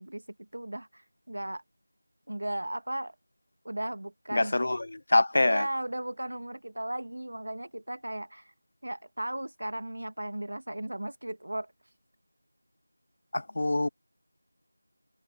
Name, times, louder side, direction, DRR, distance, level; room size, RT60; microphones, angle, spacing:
voice 1, 0.0-1.6 2.3-3.2 3.6-4.6 5.4-8.5 8.8-11.7, right 1 dB, 70° right, 1.8 m, -36 dB
voice 2, 4.3-5.6 13.3-13.9, left 2 dB, 50° left, 0.5 m, -25 dB
figure-of-eight pair, 175°, 0 cm